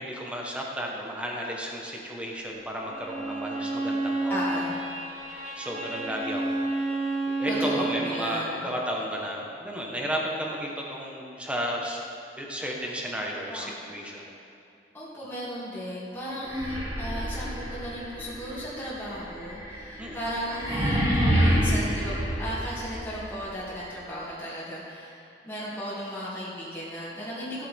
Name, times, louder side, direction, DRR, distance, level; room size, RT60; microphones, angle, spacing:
voice 1, 0.0-4.7 5.2-6.6 7.0-12.0 12.4-14.2 20.0-20.2, equal, 5° right, -2 dB, 1.5 m, -33 dB
Bowed string instrument, 2.8-8.2, right 2 dB, 40° right, 1.7 m, -30 dB
voice 2, 4.3-4.8 7.5-8.7 13.5-13.9 14.9-27.7, equal, 10° left, -10 dB, 2.8 m, -35 dB
sound 1, 16.4-23.3, equal, 25° right, 2.9 m, -28 dB
16.0 x 8.4 x 3.8 m, 2.6 s
head